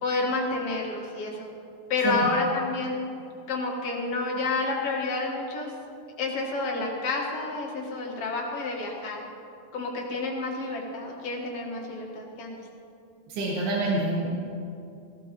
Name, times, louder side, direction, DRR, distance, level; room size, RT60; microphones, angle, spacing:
voice 1, 0.0-1.5 1.9-3.1 3.5-5.7 6.2-9.2 9.7-12.5, left 3 dB, 50° left, -1 dB, 2.1 m, -29 dB
voice 2, 13.3-14.3, right 2 dB, 90° right, -4 dB, 3.5 m, -27 dB
17.0 x 16.0 x 3.1 m, 2.7 s
omnidirectional pair, 4.3 m